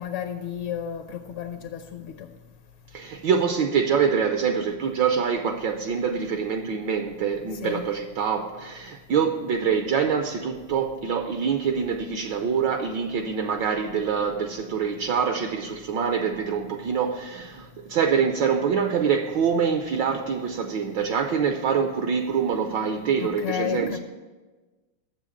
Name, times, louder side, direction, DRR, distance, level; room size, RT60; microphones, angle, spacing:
voice 1, 0.0-2.3 7.5-7.8 23.2-24.0, left 10 dB, 75° left, 1.5 m, -32 dB
voice 2, 2.9-24.0, right 6 dB, 70° right, 1.2 m, -25 dB
7.6 x 7.2 x 8.3 m
omnidirectional pair, 2.4 m